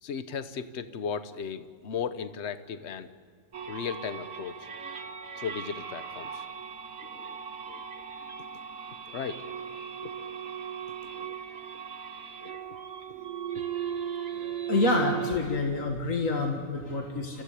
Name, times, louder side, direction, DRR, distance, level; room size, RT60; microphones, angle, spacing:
voice 1, 0.0-3.1 3.7-4.6 5.4-6.5 7.0-7.9 9.1-9.7 10.0-10.4 11.1-11.4 12.4-12.8, left 6 dB, 60° left, 11 dB, 1.2 m, -37 dB
sound 1, 3.5-15.4, right 8 dB, 80° right, 1.7 m, -38 dB
voice 2, 14.7-17.4, left 2 dB, 85° left, 2 dB, 2.2 m, -27 dB
29.0 x 15.5 x 8.3 m, 2.1 s
omnidirectional pair, 1.3 m